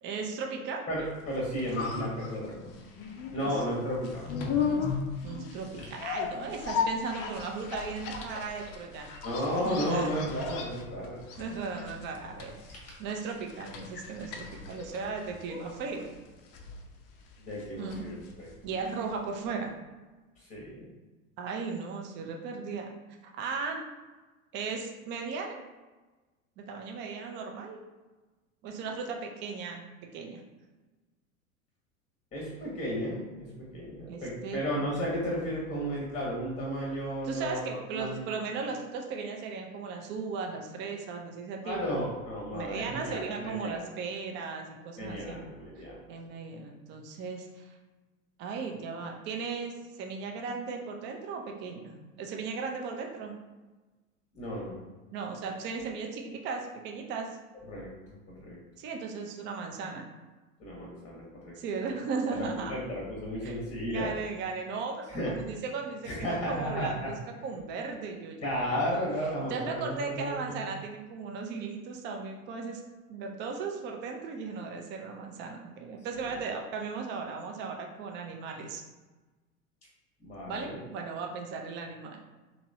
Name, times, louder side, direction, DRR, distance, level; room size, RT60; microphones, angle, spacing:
voice 1, 0.0-0.8 3.3-3.6 4.6-4.9 5.2-9.1 9.6-10.1 11.4-12.6 13.0-16.1 17.8-18.1 18.6-19.7 21.4-22.9 23.3-23.9 24.5-25.6 26.6-27.8 28.6-29.8 30.1-30.4 34.1-34.6 37.2-42.0 42.5-45.4 45.8-47.7 48.4-53.3 55.1-57.4 58.8-60.0 61.6-62.7 63.4-63.6 63.9-67.2 67.4-69.0 69.5-72.8 73.1-78.8 80.5-82.2, right 4 dB, 25° right, 2 dB, 0.4 m, -37 dB
voice 2, 0.9-2.5 3.3-4.5 5.2-5.3 9.2-11.2 17.4-18.5 20.4-20.9 32.3-38.2 41.6-43.8 45.0-46.0 54.3-54.8 57.7-57.9 58.4-58.6 60.6-61.5 62.3-64.1 65.1-65.4 66.1-67.1 68.4-70.7 80.2-80.8, equal, 15° left, -4 dB, 0.9 m, -33 dB
sound 1, 1.2-19.2 19.5-19.6, left 6 dB, 35° left, 0.5 m, -37 dB
2.9 x 2.9 x 2.6 m, 1.2 s
figure-of-eight pair, 90°, 42 cm